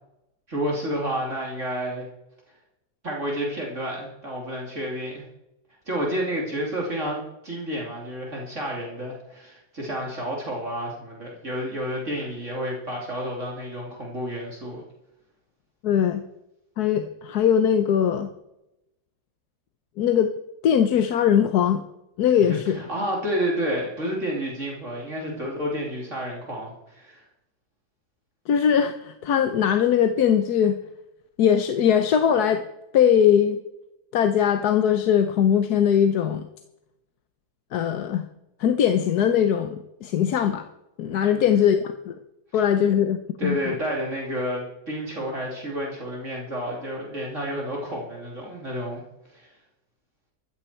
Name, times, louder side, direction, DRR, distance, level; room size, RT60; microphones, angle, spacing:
voice 1, 0.5-2.1 3.0-5.3 5.9-14.8 22.5-27.2 41.3-41.7 43.4-49.0 49.3-49.5, equal, 45° right, -2 dB, 3.3 m, -30 dB
voice 2, 15.8-16.2 16.8-18.3 20.0-20.3 20.6-21.8 22.2-22.8 28.5-30.8 31.4-32.6 32.9-33.6 34.1-36.5 37.7-38.3 38.6-40.7 41.0-41.8 42.1-42.2 42.5-43.8, left 8 dB, 70° left, 8 dB, 1.4 m, -20 dB
14.5 x 13.5 x 4.5 m, 0.87 s
omnidirectional pair, 1.8 m